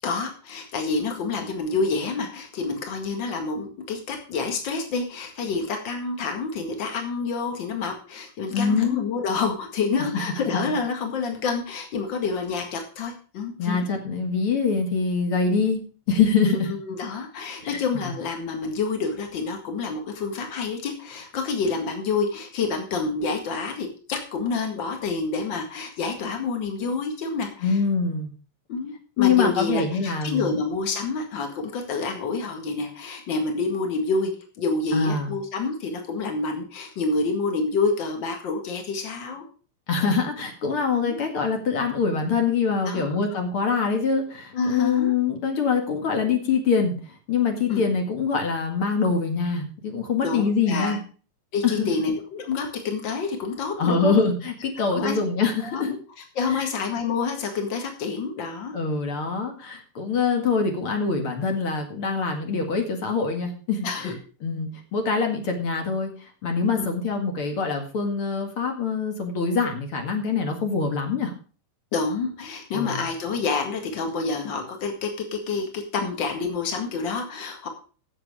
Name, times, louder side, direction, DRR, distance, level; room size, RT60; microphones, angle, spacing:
voice 1, 0.0-13.8 16.4-27.8 28.7-34.3 34.6-39.4 41.0-41.2 42.8-43.3 44.5-45.1 47.7-47.8 50.2-51.0 51.5-54.2 54.9-55.2 55.7-56.0 56.3-58.8 63.8-64.2 66.8-66.9 71.9-77.7, left 4 dB, 80° left, 4 dB, 1.0 m, -28 dB
voice 2, 8.5-9.0 13.6-15.8 16.1-16.7 17.6-18.1 27.6-28.3 29.2-30.5 34.9-35.3 39.9-51.0 51.6-51.9 53.8-55.9 56.5-56.7 58.7-64.1 64.4-71.3 72.7-73.0, left 5 dB, 50° left, 3 dB, 1.7 m, -24 dB
16.0 x 7.1 x 4.8 m, 0.39 s
omnidirectional pair, 5.5 m